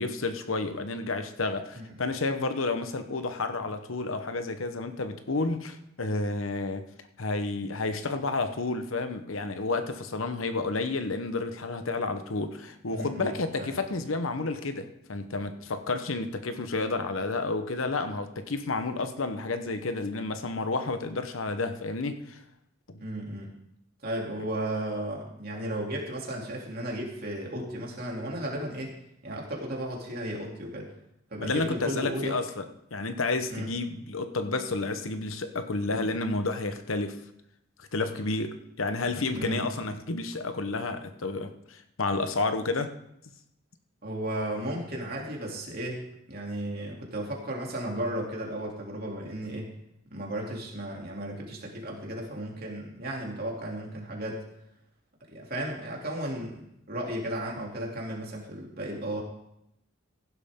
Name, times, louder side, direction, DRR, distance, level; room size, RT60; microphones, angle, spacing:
voice 1, 0.0-6.8 7.2-22.4 31.4-32.7 32.9-37.2 37.8-42.9, left 3 dB, 80° left, 9 dB, 1.0 m, -31 dB
voice 2, 12.9-13.3 13.6-13.7 23.0-23.5 24.0-28.9 29.2-30.9 31.3-32.4 33.5-33.7 39.3-39.6 44.0-49.7 50.1-54.4 55.3-59.2, right 1 dB, 50° right, -1 dB, 2.9 m, -34 dB
16.0 x 11.0 x 3.7 m, 0.79 s
head